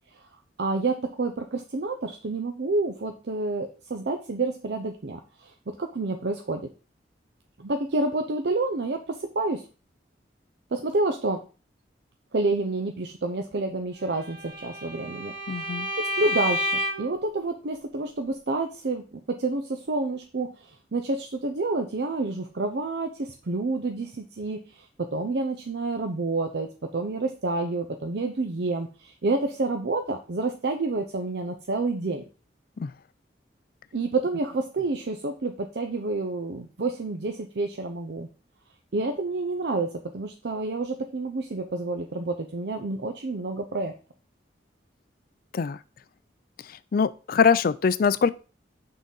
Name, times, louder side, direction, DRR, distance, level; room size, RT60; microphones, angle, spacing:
voice 1, 0.6-6.6 7.6-9.7 10.7-11.4 12.3-15.3 16.2-16.7 17.0-19.0 19.3-24.9 25.1-32.2 33.9-38.3 38.9-43.9, right 3 dB, 65° right, 0.6 m, -29 dB
Bowed string instrument, 14.2-17.2, left 1 dB, 50° right, 1.2 m, -30 dB
voice 2, 15.5-15.9 32.8-32.9 45.5-45.8 46.9-48.3, left 6 dB, 55° left, 0.4 m, -22 dB
6.2 x 3.9 x 5.4 m
head